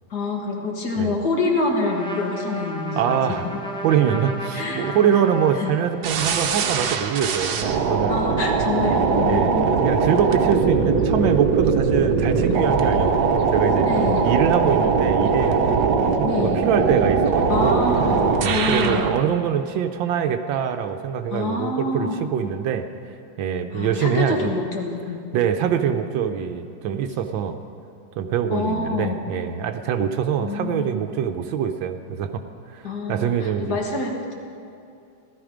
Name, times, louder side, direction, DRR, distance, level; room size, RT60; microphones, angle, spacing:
voice 1, 0.1-3.4 4.5-4.9 5.6-5.8 8.1-9.8 13.8-14.3 16.2-16.6 17.5-19.1 21.3-22.2 23.7-25.2 28.5-29.2 30.4-30.9 32.8-34.3, left 3 dB, 60° left, 1 dB, 2.1 m, -26 dB
Trumpet, 1.8-6.3, equal, 5° left, 0.4 m, -33 dB
voice 2, 3.0-3.4 3.8-8.2 9.2-13.9 14.2-17.8 18.4-22.9 23.4-24.5 25.3-27.6 28.2-32.4 32.7-32.8 33.1-33.8, right 8 dB, 85° right, 7 dB, 1.4 m, -24 dB
sound 1, 6.0-19.2, right 5 dB, 65° right, 1.3 m, -21 dB
16.0 x 12.5 x 5.0 m, 2.5 s
omnidirectional pair, 2.1 m